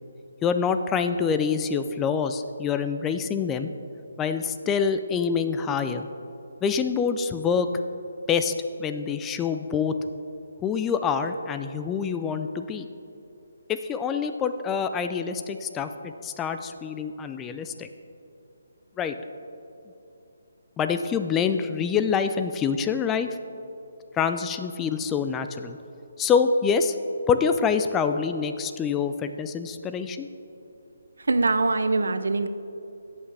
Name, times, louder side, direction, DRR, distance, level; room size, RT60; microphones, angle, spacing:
voice 1, 0.4-3.7 4.2-6.1 6.6-7.7 8.3-8.5 8.8-10.0 10.6-12.9 13.7-17.9 19.0-19.2 20.8-23.3 24.1-25.8 26.2-27.0 27.3-30.3, left 6 dB, 10° left, 9 dB, 0.3 m, -26 dB
voice 2, 31.3-32.5, right 3 dB, 85° right, 11 dB, 0.5 m, -23 dB
16.5 x 5.7 x 3.3 m, 2.8 s
hypercardioid pair, 160°, 0 cm